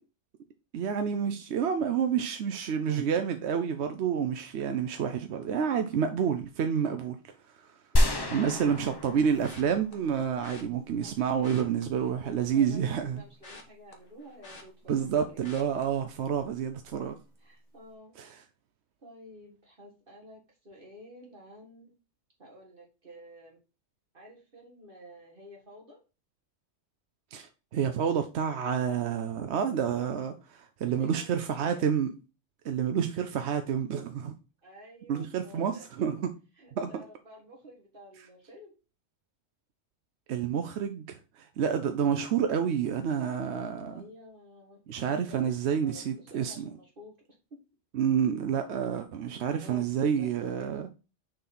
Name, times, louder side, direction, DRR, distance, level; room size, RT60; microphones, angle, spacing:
voice 1, 0.7-7.7 8.3-13.2 14.9-17.2 18.2-18.4 27.3-32.1 32.6-34.4 35.1-36.3 36.8-37.0 40.3-44.0 44.9-46.7 47.9-50.8, right 7 dB, 70° right, 0.9 m, -29 dB
sound 1, 8.0-10.2, equal, 25° left, 0.8 m, -28 dB
voice 2, 8.0-8.4 11.0-11.3 12.2-15.4 17.4-18.1 19.0-21.9 22.4-23.6 24.1-26.0 30.8-31.9 34.6-35.8 36.5-38.7 43.9-47.1 47.5-47.6 49.6-49.9 50.2-50.3 50.6-50.7, equal, 50° right, 1.9 m, -51 dB
sound 2, 9.4-9.9 10.4-10.6 11.3-12.6 12.9-15.1 15.4-15.8 16.3-16.6 16.9-17.0, left 2 dB, 50° left, 1.4 m, -50 dB
6.4 x 4.0 x 4.2 m
omnidirectional pair, 1.2 m